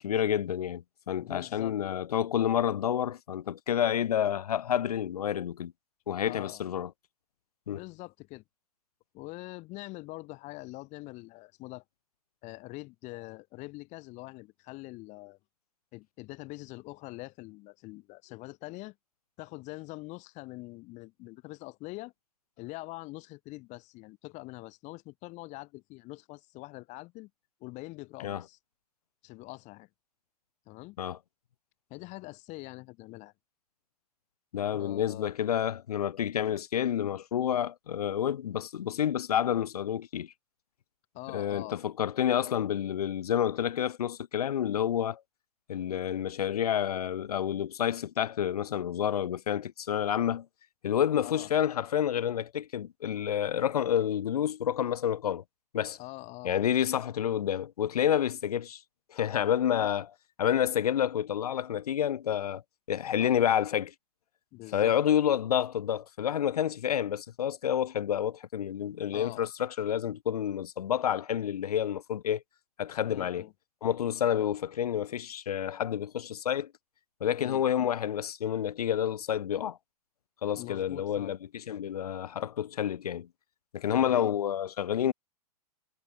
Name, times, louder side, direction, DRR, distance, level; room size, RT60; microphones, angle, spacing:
voice 1, 0.0-5.7 6.1-6.9 7.7-7.8 28.2-28.4 31.0-31.2 34.5-40.3 41.3-45.2 45.7-50.5 50.8-55.4 55.7-56.0 56.4-58.8 59.1-62.6 62.9-63.9 64.7-72.4 72.8-73.5 73.8-76.7 77.2-79.8 80.4-83.3 83.7-85.1, left 9 dB, 75° left, 0.6 m, -29 dB
voice 2, 1.2-1.7 6.3-6.7 7.7-8.4 9.1-11.8 12.4-15.4 15.9-19.0 19.4-22.1 22.6-27.3 27.6-28.6 29.2-29.9 30.7-31.0 31.9-33.3 34.7-35.3 41.1-41.8 51.2-51.5 56.0-56.9 63.2-63.5 64.5-65.0 69.1-69.5 73.1-73.5 77.4-77.6 80.6-81.4 83.9-84.3, left 22 dB, 35° left, 2.3 m, -44 dB
figure-of-eight pair, 110°, 20 cm